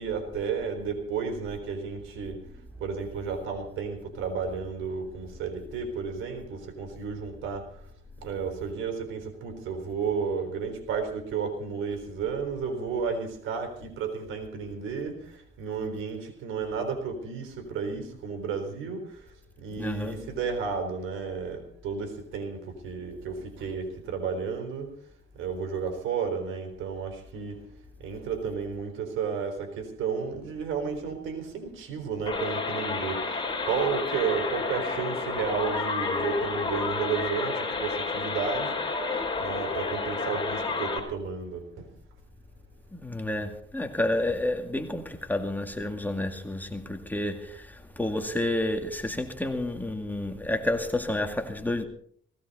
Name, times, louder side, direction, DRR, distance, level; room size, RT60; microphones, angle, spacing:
voice 1, 0.0-2.4 2.8-7.7 8.2-15.2 15.6-19.1 19.6-24.9 25.4-27.6 28.0-33.2 33.6-38.7 39.4-41.9, right 5 dB, 85° right, 4.0 m, -32 dB
voice 2, 19.8-20.2 42.9-51.8, left 1 dB, 10° left, 2.2 m, -30 dB
sound 1, 32.3-41.0, left 4 dB, 25° left, 4.1 m, -30 dB
18.5 x 16.5 x 4.2 m
cardioid pair, 90°, 20 cm